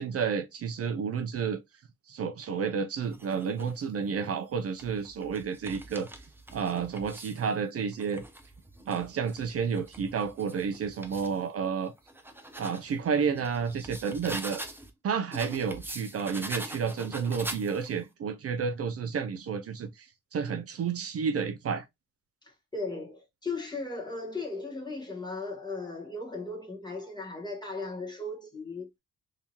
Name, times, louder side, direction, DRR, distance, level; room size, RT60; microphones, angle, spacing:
voice 1, 0.0-1.6 2.1-6.1 6.5-8.2 8.9-11.9 12.6-14.6 15.0-21.8, right 6 dB, 50° right, 0.5 m, -31 dB
sound 1, 3.0-3.8 4.5-7.5 7.9-11.4 11.8-14.9 15.3-18.1, right 1 dB, 5° right, 0.5 m, -43 dB
voice 2, 22.7-29.0, left 3 dB, 15° left, 1.3 m, -37 dB
3.6 x 2.8 x 2.8 m
cardioid pair, 115°, 29 cm